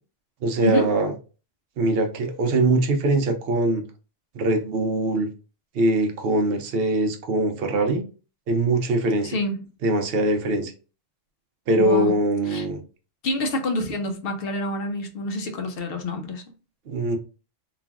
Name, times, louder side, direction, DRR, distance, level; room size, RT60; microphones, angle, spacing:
voice 1, 0.4-1.1 1.8-3.8 4.3-5.3 5.7-8.0 8.5-9.3 9.8-10.7 11.7-12.8 16.9-17.2, right 2 dB, 60° right, 0.7 m, -22 dB
voice 2, 9.2-9.6 11.8-12.1 12.5-12.7 13.2-16.4, left 1 dB, 60° left, 0.7 m, -27 dB
3.2 x 2.4 x 2.3 m
omnidirectional pair, 1.3 m